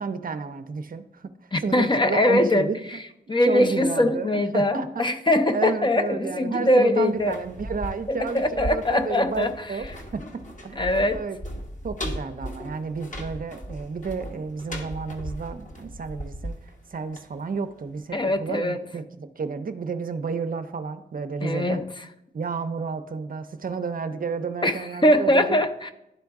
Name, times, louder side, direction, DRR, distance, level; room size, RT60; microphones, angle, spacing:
voice 1, 0.0-1.3 1.6-2.8 3.5-5.1 5.5-9.9 10.1-10.8 11.1-11.4 11.8-16.6 16.9-21.8 22.3-25.6, right 5 dB, 50° right, 9 dB, 0.5 m, -31 dB
voice 2, 1.5-3.0 3.3-7.3 8.3-9.5 10.8-11.2 18.1-18.8 21.4-22.1 24.6-25.9, left 1 dB, 25° left, 7 dB, 0.5 m, -22 dB
sound 1, 7.1-17.9 18.2-18.3, equal, 40° left, 1.1 m, -37 dB
11.0 x 3.8 x 3.5 m, 0.86 s
cardioid pair, 65°, 19 cm